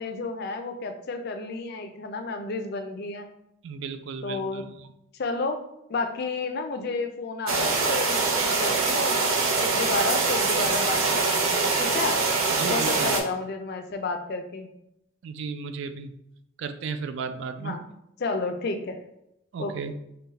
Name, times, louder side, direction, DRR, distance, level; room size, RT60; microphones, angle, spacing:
voice 1, 0.0-3.3 4.2-4.7 5.2-5.6 5.9-9.2 9.6-12.2 12.7-14.7 17.6-17.8 18.2-19.0 19.6-19.9, left 3 dB, 50° left, 7 dB, 0.4 m, -31 dB
voice 2, 3.6-4.7 12.5-13.2 15.2-16.1 16.6-17.8 19.5-19.9, right 5 dB, 60° right, 9 dB, 0.3 m, -34 dB
sound 1, 7.5-13.2, right 4 dB, 80° right, 0.7 m, -24 dB
3.9 x 2.2 x 3.9 m, 0.81 s
head